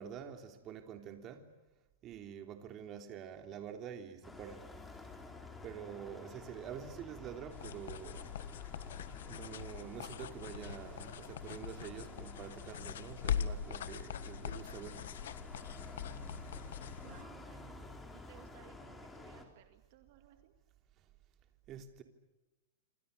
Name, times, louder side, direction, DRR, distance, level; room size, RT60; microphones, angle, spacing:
voice 1, 0.0-1.5 2.0-4.7 5.6-8.4 9.2-15.2 21.0-21.1 21.7-22.0, right 8 dB, 30° right, 3.3 m, -47 dB
sound 1, 4.2-19.4, left 2 dB, 10° left, 3.9 m, -52 dB
sound 2, 7.5-17.2, left 8 dB, 75° left, 1.4 m, -42 dB
sound 3, 8.0-11.6, left 9 dB, 40° left, 3.8 m, -61 dB
voice 2, 17.0-20.5, right 13 dB, 55° right, 2.1 m, -60 dB
28.0 x 26.0 x 6.9 m
hypercardioid pair, 145°, 0 cm